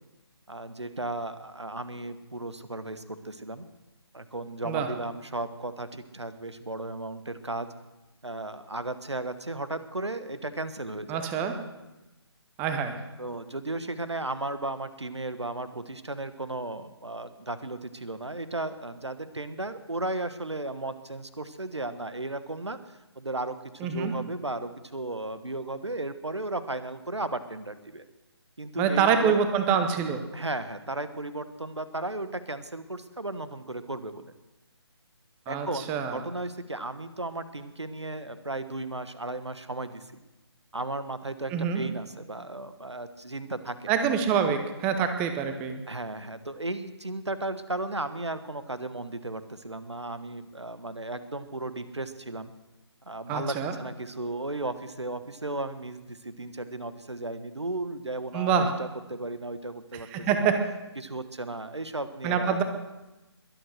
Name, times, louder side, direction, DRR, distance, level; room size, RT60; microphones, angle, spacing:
voice 1, 0.5-3.6 4.1-7.7 8.2-11.3 13.2-22.8 23.1-28.0 28.6-29.3 30.3-34.3 35.5-40.2 40.7-43.9 45.9-52.5 53.0-60.5 61.0-62.6, right 2 dB, 75° right, 12 dB, 1.3 m, -35 dB
voice 2, 11.1-11.5 12.6-13.0 23.8-24.1 28.8-30.2 35.5-36.2 41.5-41.8 43.9-45.8 53.3-53.7 58.3-58.7 60.1-60.5 62.2-62.6, right 7 dB, 10° right, 8 dB, 0.8 m, -26 dB
21.5 x 8.2 x 6.3 m, 1.0 s
figure-of-eight pair, 145°, 14 cm